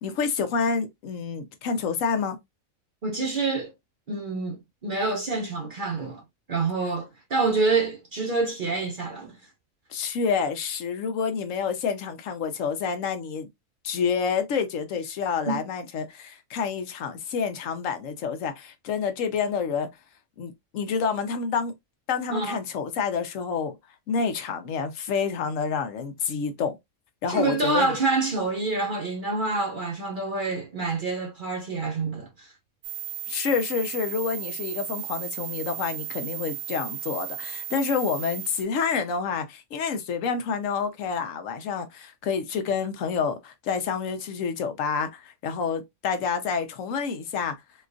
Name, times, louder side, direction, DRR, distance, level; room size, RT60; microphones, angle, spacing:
voice 1, 0.0-2.4 9.9-13.5 13.8-19.9 20.4-21.7 22.1-23.8 24.1-26.8 27.2-27.9 33.3-47.5, left 6 dB, 70° left, 1.0 m, -28 dB
voice 2, 3.0-3.7 4.1-6.2 6.5-9.4 15.5-15.6 22.3-22.6 27.3-32.5, right 3 dB, 50° right, 0.6 m, -27 dB
sound 1, 32.8-38.6, right 13 dB, 75° right, 1.1 m, -35 dB
4.2 x 2.3 x 2.5 m
omnidirectional pair, 1.4 m